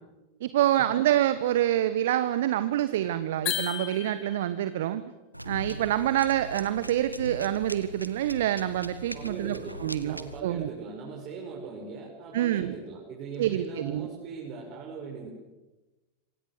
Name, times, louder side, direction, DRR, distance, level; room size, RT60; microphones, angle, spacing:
voice 1, 0.4-5.0 5.4-10.7 12.3-12.7 13.4-14.1, right 12 dB, 55° right, 13 dB, 1.3 m, -27 dB
sound 1, 3.4-4.6, left 11 dB, 40° left, 4.5 m, -33 dB
sound 2, 5.3-10.4, equal, 90° right, 1.6 m, -40 dB
voice 2, 9.1-15.3, right 5 dB, 35° right, -1 dB, 5.8 m, -40 dB
27.5 x 26.0 x 7.9 m, 1.1 s
figure-of-eight pair, 90°, 0 cm